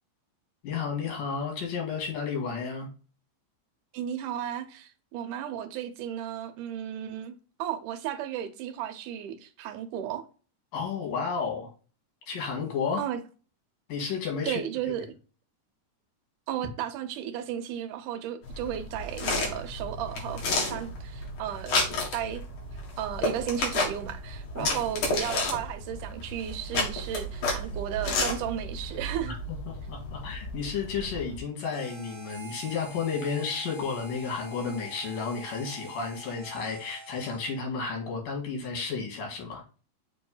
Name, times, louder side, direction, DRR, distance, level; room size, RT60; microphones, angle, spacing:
voice 1, 0.6-2.9 10.7-11.7 12.3-13.1 13.9-14.6 24.6-24.7 29.2-29.3 29.7-39.6, left 5 dB, 85° left, 3.8 m, -32 dB
voice 2, 3.9-10.2 13.0-13.2 14.5-15.1 16.5-22.4 23.0-29.4, right 10 dB, 80° right, 2.3 m, -34 dB
sound 1, 18.4-31.4, left 2 dB, 70° left, 3.4 m, -32 dB
Harmonica, 31.7-37.7, right 3 dB, 30° right, 0.5 m, -46 dB
6.9 x 3.2 x 5.4 m
omnidirectional pair, 3.7 m